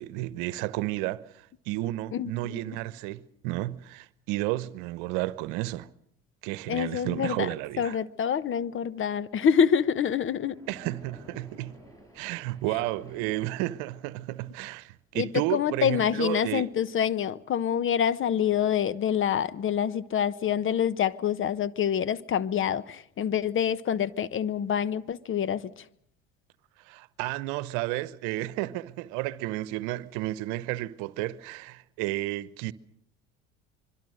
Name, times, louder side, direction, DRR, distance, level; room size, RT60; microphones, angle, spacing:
voice 1, 0.0-5.9 6.4-8.0 10.7-11.7 12.1-16.6 26.8-32.7, right 17 dB, 70° right, 1.0 m, -32 dB
voice 2, 2.1-2.6 6.7-7.5 7.8-10.6 15.1-25.7, left 8 dB, 40° left, 1.1 m, -26 dB
Splash splatter, 10.5-14.5, equal, 10° left, 7.3 m, -51 dB
26.0 x 23.0 x 6.5 m
hypercardioid pair, 70°, 30 cm